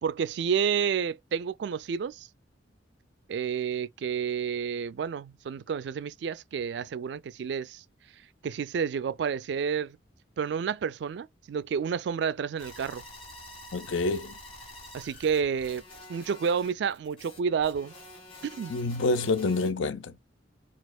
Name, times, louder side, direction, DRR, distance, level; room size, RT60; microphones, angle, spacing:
voice 1, 0.0-2.3 3.3-7.8 8.4-10.0 10.4-13.0 14.9-15.8 16.1-17.9 18.5-18.7, right 6 dB, 65° right, 0.3 m, -30 dB
sound 1, 12.6-19.7, left 1 dB, 30° left, 1.8 m, -47 dB
voice 2, 13.7-14.3 18.7-20.1, left 3 dB, 85° left, 0.5 m, -27 dB
4.2 x 2.4 x 2.3 m
head